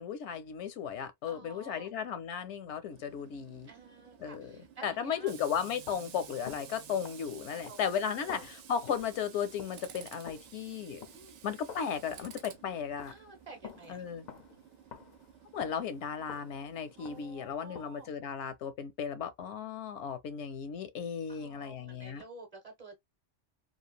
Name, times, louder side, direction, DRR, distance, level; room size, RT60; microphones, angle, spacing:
voice 1, 0.0-3.7 4.2-4.6 4.8-11.0 11.4-13.1 13.9-14.3 15.5-22.2, left 7 dB, 80° left, 0.9 m, -35 dB
voice 2, 1.2-1.9 3.6-5.3 7.5-8.4 11.1-11.4 13.1-14.0 17.0-18.2 21.3-23.0, right 3 dB, 35° right, 0.9 m, -51 dB
Tools, 2.9-17.3, right 9 dB, 80° right, 0.9 m, -53 dB
sound 1, 5.5-18.1, left 7 dB, 60° left, 0.5 m, -52 dB
3.1 x 2.4 x 2.3 m
omnidirectional pair, 1.2 m